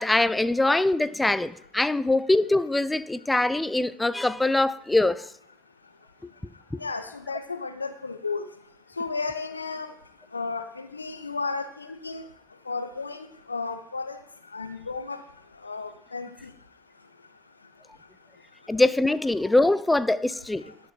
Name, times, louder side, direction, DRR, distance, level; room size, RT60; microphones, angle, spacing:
voice 1, 0.0-5.2 18.7-20.6, left 2 dB, 10° left, 15 dB, 0.6 m, -23 dB
voice 2, 6.8-8.4 9.0-9.9 10.3-12.2 12.7-14.2 14.5-15.2 15.6-16.5, left 4 dB, 90° left, 10 dB, 0.5 m, -33 dB
11.5 x 5.2 x 5.3 m, 0.70 s
figure-of-eight pair, 60°, 0 cm